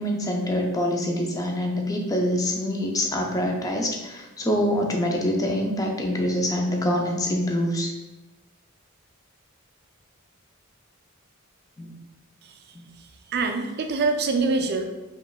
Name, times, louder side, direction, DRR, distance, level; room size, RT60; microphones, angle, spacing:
voice 1, 0.0-7.9 11.8-12.0 12.7-12.8, equal, 15° left, 1 dB, 0.5 m, -25 dB
voice 2, 13.3-14.8, right 3 dB, 50° right, 5 dB, 0.4 m, -24 dB
4.7 x 3.1 x 2.4 m, 1.1 s
head